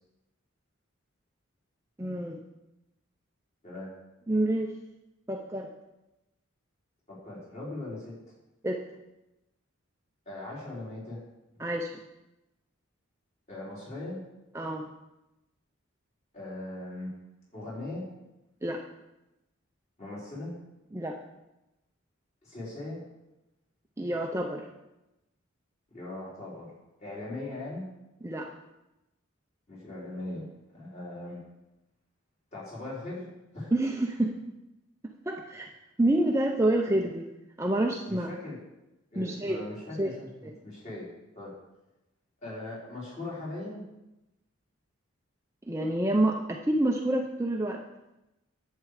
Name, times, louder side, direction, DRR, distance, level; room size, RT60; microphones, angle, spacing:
voice 1, 2.0-2.4 4.3-4.7 5.3-5.7 8.6-8.8 11.6-12.0 14.5-14.8 18.6-18.8 20.9-21.2 24.0-24.7 28.2-28.5 33.7-34.3 35.3-35.7 36.0-37.3 37.6-38.3 39.2-39.6 40.0-40.1 40.4-40.5 45.7-47.8, right 1 dB, 15° right, 1 dB, 0.6 m, -27 dB
voice 2, 7.1-8.1 10.3-11.2 13.5-14.2 16.3-17.1 17.5-18.0 20.0-20.5 22.4-23.0 25.9-26.7 27.0-27.9 29.7-30.5 30.7-31.4 32.5-33.3 33.5-33.7 38.1-38.6 39.1-41.1 41.3-41.5 42.4-43.8, left 2 dB, 35° left, -6 dB, 4.4 m, -39 dB
11.0 x 8.4 x 5.0 m, 0.95 s
head